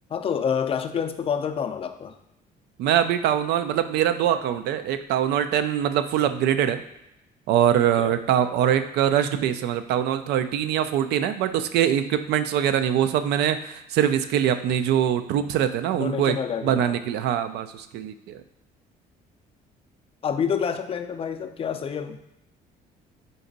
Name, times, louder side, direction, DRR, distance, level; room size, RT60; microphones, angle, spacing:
voice 1, 0.1-2.2 8.0-8.2 15.9-17.0 20.2-22.2, left 7 dB, 35° left, 7 dB, 0.4 m, -28 dB
voice 2, 2.8-6.8 7.5-18.4, right 10 dB, 75° right, 10 dB, 0.4 m, -23 dB
3.9 x 3.4 x 3.9 m, 0.89 s
cardioid pair, 110°, 17 cm